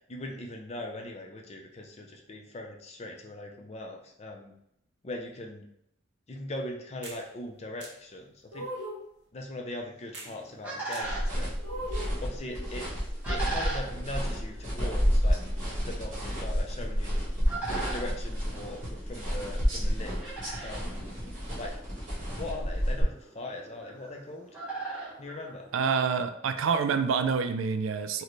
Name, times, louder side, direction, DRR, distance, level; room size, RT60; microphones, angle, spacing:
voice 1, 0.1-4.5 5.0-5.7 6.3-8.7 9.3-11.5 12.2-12.9 13.3-17.2 17.7-20.1 20.6-21.0 21.6-21.7 22.4-24.5 25.2-25.7, left 1 dB, 35° left, 1 dB, 0.5 m, -40 dB
sound 1, 7.0-7.2 7.8-7.9 8.5-9.1 10.1-10.3 10.9-11.0 11.6-12.2, right 1 dB, 60° right, 0.8 m, -38 dB
sound 2, 10.0-26.2, right 3 dB, 10° right, 0.9 m, -42 dB
sound 3, 11.0-23.0, equal, 40° right, 1.4 m, -30 dB
voice 2, 25.7-28.2, right 5 dB, 90° right, 8 dB, 0.3 m, -27 dB
4.0 x 2.2 x 3.1 m, 0.76 s
head